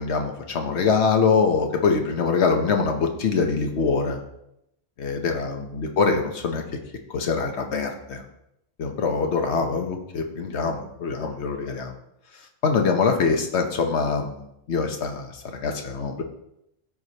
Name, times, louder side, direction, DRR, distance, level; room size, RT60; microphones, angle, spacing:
voice 1, 0.0-4.2 5.0-6.6 7.1-8.2 8.8-11.9 12.6-16.2, left 5 dB, 80° left, 4 dB, 1.2 m, -24 dB
14.0 x 4.8 x 2.9 m, 0.81 s
omnidirectional pair, 1.1 m